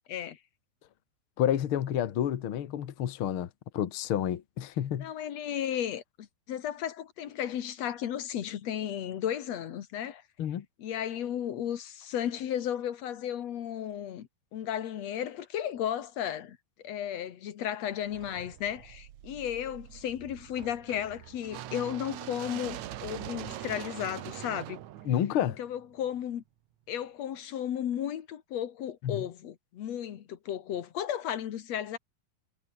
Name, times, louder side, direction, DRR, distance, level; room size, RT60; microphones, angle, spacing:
voice 1, 0.1-0.4 5.0-10.2 10.8-16.6 16.8-24.8 25.5-26.4 26.9-32.0, left 10 dB, 55° left, 2.1 m, -34 dB
voice 2, 1.4-3.5 3.7-5.1 10.4-10.6 25.0-25.6 29.0-29.2, left 10 dB, 75° left, 1.2 m, -29 dB
sound 1, 18.1-26.2, right 13 dB, 65° right, 2.0 m, -43 dB
omnidirectional pair, 4.4 m